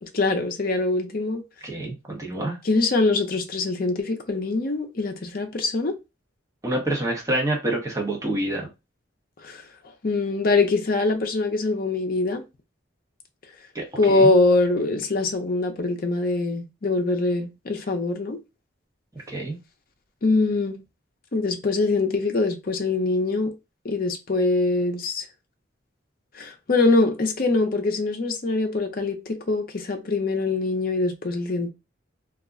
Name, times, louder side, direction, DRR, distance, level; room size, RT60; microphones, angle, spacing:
voice 1, 0.0-1.4 2.6-6.0 9.4-9.6 10.0-12.4 14.0-18.4 20.2-20.8 21.3-23.5 23.8-25.2 26.4-31.7, left 3 dB, 45° left, 0.5 m, -23 dB
voice 2, 1.6-2.6 6.6-8.7 13.7-14.3 19.1-19.6, right 1 dB, 15° right, 0.8 m, -27 dB
2.4 x 2.1 x 3.6 m
head